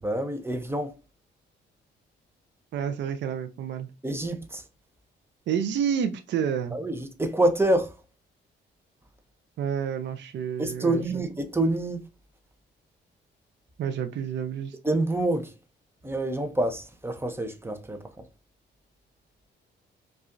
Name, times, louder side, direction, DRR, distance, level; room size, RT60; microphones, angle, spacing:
voice 1, 0.0-1.0 4.0-4.6 6.7-7.9 10.6-12.0 14.8-15.5 16.0-18.2, right 1 dB, 10° right, 0.6 m, -27 dB
voice 2, 2.7-3.9 5.5-6.8 9.6-11.2 13.8-14.8, right 8 dB, 65° right, 0.5 m, -29 dB
4.9 x 2.4 x 2.5 m
cardioid pair, 90°, 20 cm